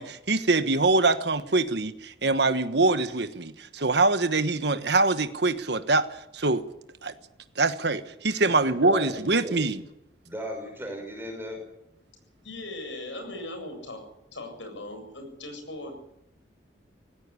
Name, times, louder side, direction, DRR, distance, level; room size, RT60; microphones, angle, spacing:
voice 1, 0.0-6.0 6.3-6.7 7.0-7.1 7.6-9.8, right 3 dB, 65° right, 1.3 m, -24 dB
voice 2, 8.5-9.6 10.2-11.6, equal, 10° right, 5.7 m, -36 dB
voice 3, 12.4-14.0 14.3-15.9, left 2 dB, 85° left, 7.9 m, -39 dB
18.5 x 17.0 x 9.9 m
head